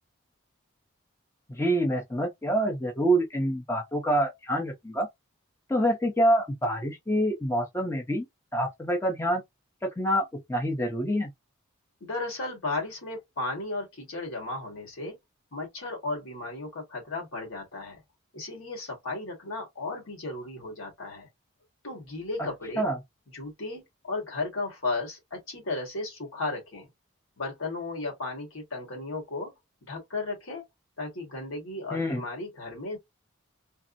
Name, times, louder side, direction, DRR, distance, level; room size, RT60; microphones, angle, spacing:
voice 1, 1.5-5.1 5.7-8.3 8.5-9.4 10.0-11.3 22.8-23.0 31.9-32.2, right 1 dB, 10° left, 0.5 m, -26 dB
voice 2, 12.0-15.2 15.5-18.0 18.3-21.3 21.8-22.9 23.3-26.9 27.4-29.5 29.9-30.6 31.0-33.0, left 2 dB, 75° left, 1.5 m, -35 dB
3.3 x 2.0 x 2.5 m
head